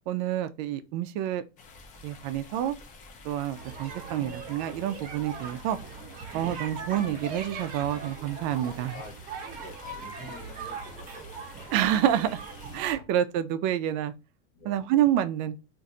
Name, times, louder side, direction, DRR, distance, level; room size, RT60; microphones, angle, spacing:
voice 1, 0.1-1.4 2.0-2.8 3.2-5.8 6.3-9.0 11.7-12.4 12.7-14.1 14.6-15.6, right 11 dB, 45° right, 0.4 m, -28 dB
sound 1, 1.6-12.9, left 4 dB, 25° left, 0.5 m, -50 dB
sound 2, 3.5-13.0, right 5 dB, 25° right, 0.8 m, -40 dB
voice 2, 9.5-11.5 14.5-14.8, left 3 dB, 70° left, 1.3 m, -48 dB
2.5 x 2.5 x 4.1 m
supercardioid pair, 160°, 32 cm